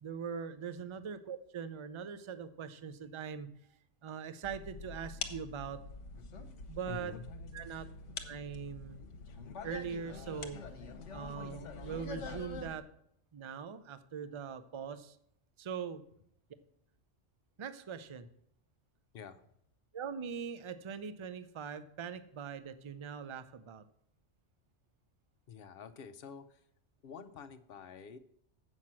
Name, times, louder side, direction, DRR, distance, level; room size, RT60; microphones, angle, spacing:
voice 1, 0.0-3.5 4.0-5.8 6.7-7.1 7.5-7.8 8.3-9.0 9.6-10.6 11.1-12.8 13.3-15.2 15.6-16.0 17.6-18.3 19.9-23.8, right 7 dB, 45° right, 12 dB, 0.4 m, -42 dB
sound 1, 4.4-12.8, left 4 dB, 75° left, 1.3 m, -45 dB
voice 2, 6.9-7.3 19.1-19.4 25.5-26.6 27.0-28.2, left 6 dB, 55° left, 9 dB, 0.8 m, -48 dB
8.0 x 5.9 x 7.4 m, 0.71 s
omnidirectional pair, 1.2 m